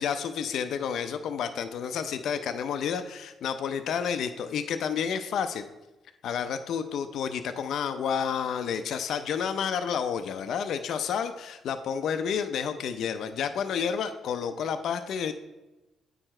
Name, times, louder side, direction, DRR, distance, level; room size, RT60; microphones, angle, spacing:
voice 1, 0.0-5.6 6.2-15.3, left 7 dB, 70° left, 8 dB, 0.5 m, -30 dB
8.7 x 4.7 x 4.3 m, 1.0 s
cardioid pair, 90°, 0 cm